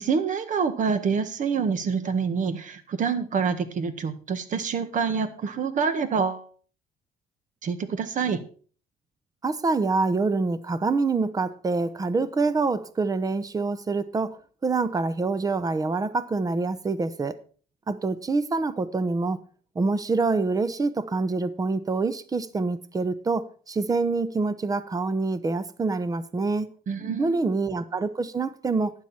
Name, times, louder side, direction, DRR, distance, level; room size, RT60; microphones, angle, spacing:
voice 1, 0.0-6.4 7.6-8.4 26.9-27.5, right 6 dB, 50° right, 1.7 m, -26 dB
voice 2, 9.4-17.4 17.9-19.4 19.7-26.7 27.2-28.9, right 3 dB, 20° right, 0.9 m, -26 dB
12.0 x 9.4 x 4.4 m
cardioid pair, 110°, 17 cm